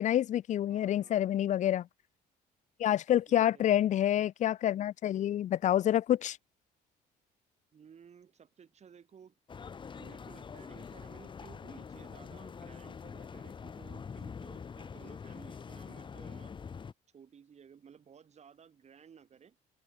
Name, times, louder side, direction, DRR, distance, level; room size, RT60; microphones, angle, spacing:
voice 1, 0.0-1.9 2.8-6.4, left 11 dB, 45° left, 0.5 m, -28 dB
voice 2, 0.7-1.5 3.3-4.0 7.7-9.3 10.0-16.5 17.1-19.6, right 7 dB, 40° right, 6.8 m, -56 dB
sound 1, 9.5-16.9, left 6 dB, 30° left, 1.0 m, -45 dB
cardioid pair, 110°, 17 cm